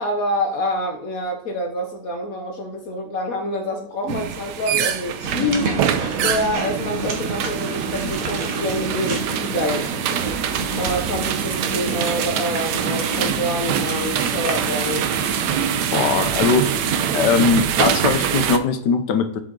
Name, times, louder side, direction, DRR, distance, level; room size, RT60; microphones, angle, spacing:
voice 1, 0.0-5.9 6.2-10.3 10.8-15.1, left 1 dB, 60° left, 3 dB, 1.2 m, -27 dB
sound 1, 4.1-18.6, right 9 dB, 80° right, 1.2 m, -25 dB
sound 2, 5.2-17.4, right 4 dB, 55° right, 1.4 m, -28 dB
voice 2, 15.9-16.7 17.1-19.4, left 6 dB, 75° left, 9 dB, 1.4 m, -20 dB
7.4 x 5.0 x 3.8 m, 0.70 s
omnidirectional pair, 1.9 m